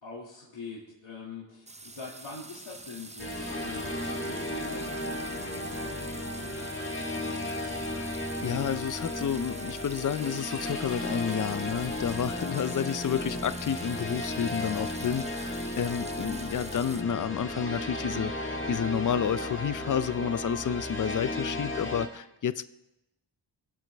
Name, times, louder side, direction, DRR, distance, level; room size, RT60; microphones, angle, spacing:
voice 1, 0.0-7.5, left 3 dB, 85° left, -6 dB, 2.3 m, -44 dB
sound 1, 1.7-17.0, right 2 dB, 15° right, 0.6 m, -45 dB
sound 2, 3.2-22.1, left 1 dB, 25° left, 1.7 m, -35 dB
voice 2, 8.2-22.6, left 8 dB, 45° left, 14 dB, 0.5 m, -30 dB
22.0 x 8.1 x 3.4 m, 0.92 s
wide cardioid pair, 90°, 46 cm